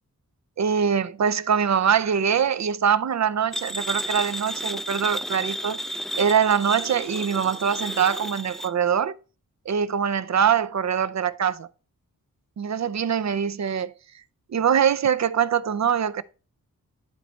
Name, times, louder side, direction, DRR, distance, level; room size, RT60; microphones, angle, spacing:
voice 1, 0.6-5.8 6.2-9.1 9.7-11.7 12.6-13.9 14.5-16.2, right 7 dB, 50° right, 0.6 m, -23 dB
sound 1, 3.5-8.7, equal, ahead, 0.5 m, -32 dB
11.0 x 4.0 x 4.4 m
cardioid pair, 40°, 36 cm